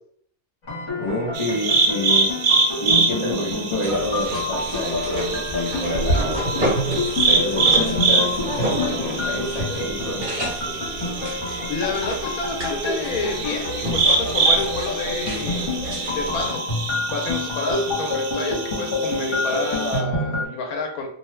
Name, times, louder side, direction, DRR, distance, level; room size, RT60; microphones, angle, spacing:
sound 1, 0.6-20.5, left 2 dB, 60° left, 1.4 m, -28 dB
voice 1, 1.0-2.3 2.8-10.6, left 1 dB, 30° left, -5 dB, 0.8 m, -28 dB
sound 2, 1.3-20.0, right 4 dB, 70° right, 0.9 m, -25 dB
sound 3, 3.8-16.6, right 1 dB, 40° right, 1.0 m, -30 dB
voice 2, 11.3-15.8 16.1-16.6 17.1-21.1, left 3 dB, 80° left, 1 dB, 1.2 m, -29 dB
2.8 x 2.2 x 3.2 m, 0.63 s
omnidirectional pair, 1.5 m